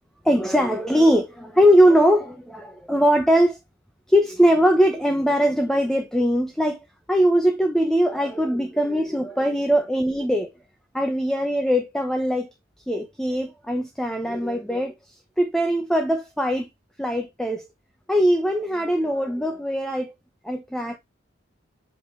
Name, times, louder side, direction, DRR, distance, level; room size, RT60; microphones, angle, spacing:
voice 1, 0.2-3.6 4.1-10.5 10.9-12.5 12.9-16.7 17.0-17.7 18.1-20.1 20.4-21.0, equal, 5° left, 0.8 m, -21 dB
7.8 x 3.7 x 3.2 m
head